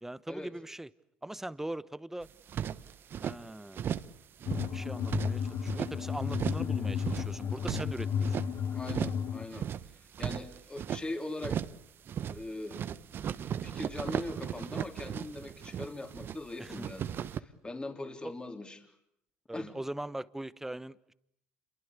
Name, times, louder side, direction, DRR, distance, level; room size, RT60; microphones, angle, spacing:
voice 1, 0.0-0.9 1.2-2.3 3.2-4.1 4.7-8.4 16.6-16.9 18.2-18.3 19.5-21.1, right 1 dB, 5° right, 1.1 m, -41 dB
sound 1, 2.2-3.4 3.7-4.2 4.4-6.0 6.3-6.7 7.0-8.5 8.8-9.3 9.5-11.0 11.4-11.8 12.1-12.5 12.7-16.4 16.6-17.4, right 9 dB, 50° right, 1.2 m, -36 dB
sound 2, 4.5-9.5, left 7 dB, 55° left, 1.7 m, -33 dB
voice 2, 8.7-9.7 10.0-11.6 12.3-12.8 13.6-18.9 19.5-19.7, left 2 dB, 20° left, 3.7 m, -41 dB
28.0 x 23.0 x 8.3 m
supercardioid pair, 80°, 5 cm